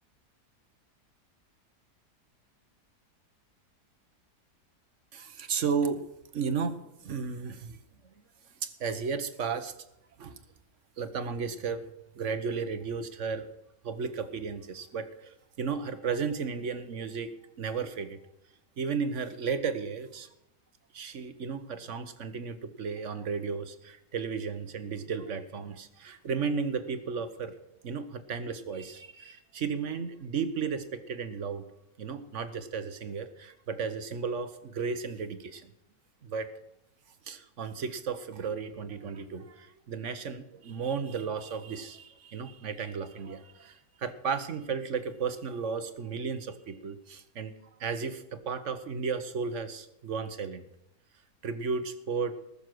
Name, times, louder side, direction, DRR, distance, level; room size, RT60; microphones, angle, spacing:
voice 1, 5.1-6.0 6.3-7.8 8.6-9.7 10.2-10.4 11.0-11.8 12.1-13.5 13.8-17.3 17.6-18.2 18.8-20.3 20.9-27.6 27.8-31.6 32.0-35.7 36.2-36.5 37.2-47.5 47.8-50.6 51.4-52.3, right 5 dB, 50° right, 10 dB, 1.2 m, -34 dB
19.0 x 7.0 x 6.1 m, 0.84 s
omnidirectional pair, 1.8 m